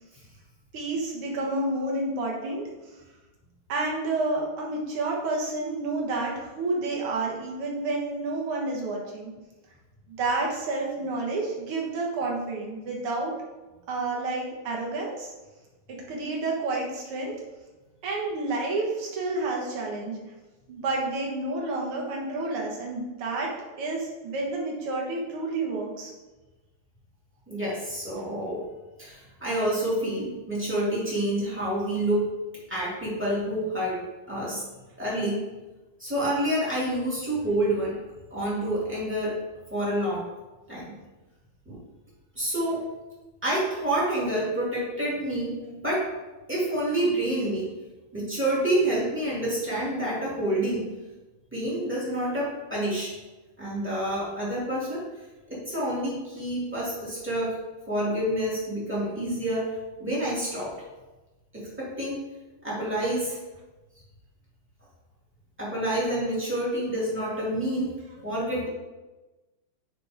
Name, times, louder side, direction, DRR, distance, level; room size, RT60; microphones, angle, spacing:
voice 1, 0.7-3.0 3.7-9.3 10.1-13.3 13.9-15.3 15.9-17.3 18.0-20.2 20.7-26.1 68.0-68.2, right 2 dB, 65° right, -2 dB, 1.4 m, -30 dB
voice 2, 27.5-28.6 29.0-32.3 32.7-34.0 34.3-34.6 35.0-35.4 36.0-37.9 38.3-39.3 39.7-40.2 40.7-40.9 41.6-41.8 42.3-42.8 43.4-46.1 46.5-47.7 48.1-50.9 51.5-53.1 53.6-55.0 55.5-57.5 57.9-59.7 60.0-60.7 61.5-62.2 62.6-63.4 65.6-67.9 68.2-68.7, right 1 dB, 5° right, -8 dB, 1.1 m, -28 dB
10.0 x 4.0 x 3.5 m, 1.1 s
omnidirectional pair, 4.2 m